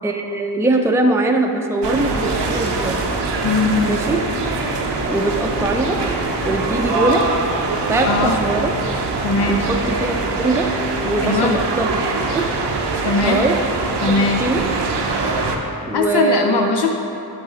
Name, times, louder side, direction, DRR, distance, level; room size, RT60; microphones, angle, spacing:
voice 1, 0.0-3.0 3.8-4.2 5.1-6.0 6.4-7.3 7.9-8.7 9.5-10.7 11.0-12.1 12.3-12.5 13.2-13.6 14.0-14.1 14.4-14.6 15.9-16.8, right 2 dB, 5° right, 2 dB, 0.4 m, -21 dB
sound 1, 1.8-15.6, right 3 dB, 90° right, 0.7 m, -23 dB
sound 2, 2.3-8.0, right 2 dB, 15° left, 1.3 m, -35 dB
voice 2, 3.4-4.0 8.1-8.3 9.2-9.7 11.2-11.6 13.0-13.5 14.0-14.5 15.9-16.9, left 4 dB, 75° left, 3 dB, 0.5 m, -19 dB
9.1 x 4.1 x 4.0 m, 2.9 s
cardioid pair, 50°, 41 cm